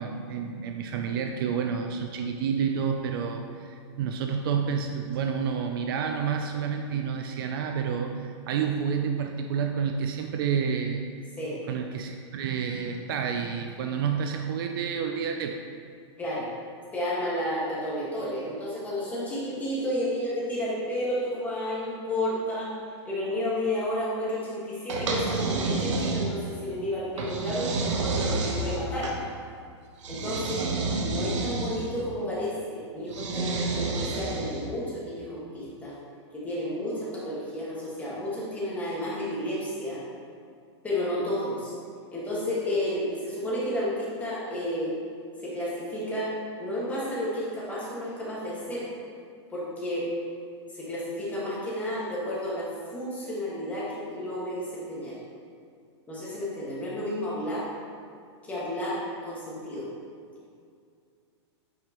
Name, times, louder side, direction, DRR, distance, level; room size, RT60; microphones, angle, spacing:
voice 1, 0.0-11.0 11.7-15.6, right 6 dB, 50° right, 4 dB, 0.5 m, -29 dB
voice 2, 16.9-22.7 23.1-29.1 30.1-30.7 31.0-35.9 36.3-40.0 40.8-41.7 42.1-44.9 45.4-48.9 49.5-50.1 50.7-55.2 56.1-57.7 58.4-59.9, left 1 dB, 10° left, -7 dB, 1.7 m, -31 dB
sound 1, 24.9-26.6 27.2-29.2 30.0-31.9 33.1-34.7, right 3 dB, 80° right, 1.2 m, -29 dB
9.4 x 5.0 x 3.0 m, 2.3 s
supercardioid pair, 160°, 15 cm